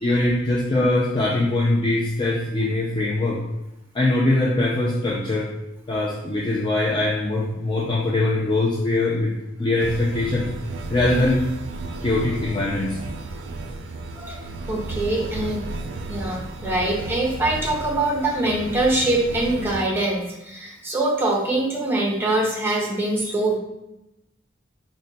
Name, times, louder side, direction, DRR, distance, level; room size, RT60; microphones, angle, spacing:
voice 1, 0.0-3.4 3.9-5.5 5.9-10.5 10.9-11.4 12.0-13.0, left 2 dB, 25° left, -4 dB, 0.4 m, -22 dB
sound 1, 9.8-19.8, right 2 dB, 70° right, 0.4 m, -33 dB
voice 2, 14.2-15.6 16.1-23.6, right 2 dB, 10° right, -2 dB, 0.7 m, -23 dB
4.2 x 2.2 x 3.9 m, 0.91 s
head